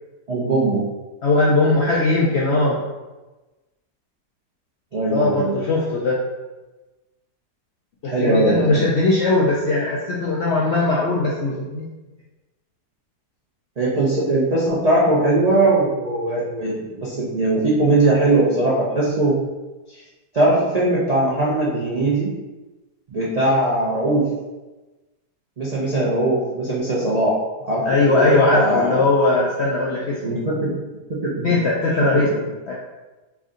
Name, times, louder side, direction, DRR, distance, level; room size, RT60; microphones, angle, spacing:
voice 1, 0.3-0.8 4.9-5.5 8.0-8.7 13.8-19.4 19.9-20.0 20.3-22.3 23.1-24.3 25.6-27.3 27.6-29.0 30.2-30.7 31.1-31.5 32.1-32.3, right 2 dB, 70° right, -7 dB, 0.3 m, -20 dB
voice 2, 1.2-2.8 5.1-6.2 8.0-11.9 27.9-30.4 31.4-32.4 32.7-32.8, left 2 dB, 75° left, -4 dB, 0.6 m, -19 dB
3.4 x 2.6 x 3.6 m, 1.1 s
omnidirectional pair, 1.7 m